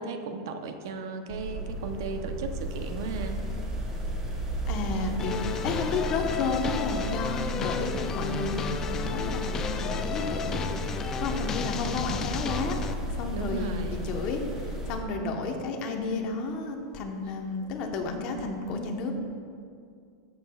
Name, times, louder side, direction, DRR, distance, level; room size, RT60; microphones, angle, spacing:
voice 1, 0.0-3.4 5.2-5.3 13.3-14.1 17.6-17.8, right 4 dB, 70° right, 7 dB, 0.7 m, -36 dB
sound 1, 1.3-15.0, equal, 20° right, 1.5 m, -34 dB
voice 2, 4.7-5.4 5.6-10.6 11.2-12.8 13.1-19.1, left 3 dB, 40° left, 3 dB, 1.0 m, -32 dB
sound 2, 5.2-12.9, left 6 dB, 20° left, 0.4 m, -33 dB
13.5 x 7.5 x 2.3 m, 2.3 s
supercardioid pair, 150°, 2 cm